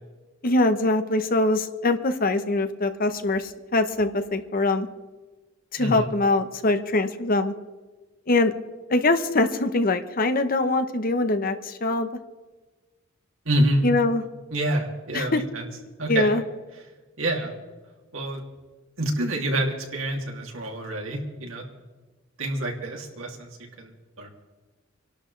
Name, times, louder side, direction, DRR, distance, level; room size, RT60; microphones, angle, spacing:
voice 1, 0.4-4.9 5.7-7.5 8.3-8.5 8.9-12.1 13.8-14.2 15.1-15.4 16.1-16.4, left 2 dB, 45° left, 9 dB, 1.0 m, -23 dB
voice 2, 13.4-13.8 14.5-15.7 16.0-16.3 17.2-17.5 18.1-18.4 19.0-21.6 22.4-23.5 23.8-24.3, right 1 dB, 90° right, 0 dB, 2.7 m, -27 dB
27.0 x 12.0 x 3.3 m, 1.2 s
head